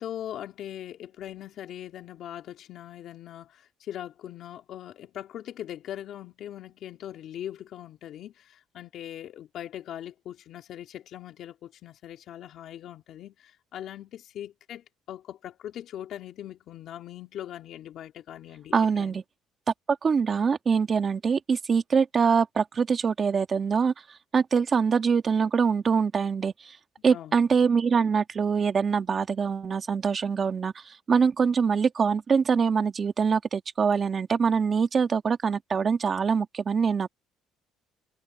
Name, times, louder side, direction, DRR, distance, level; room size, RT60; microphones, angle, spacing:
voice 1, 0.0-19.2 27.1-27.4, left 11 dB, 55° left, 3.1 m, -41 dB
voice 2, 18.7-19.2 20.0-23.9 24.3-26.8 27.0-37.1, right 6 dB, 30° right, 1.9 m, -24 dB
cardioid pair, 140°, 0 cm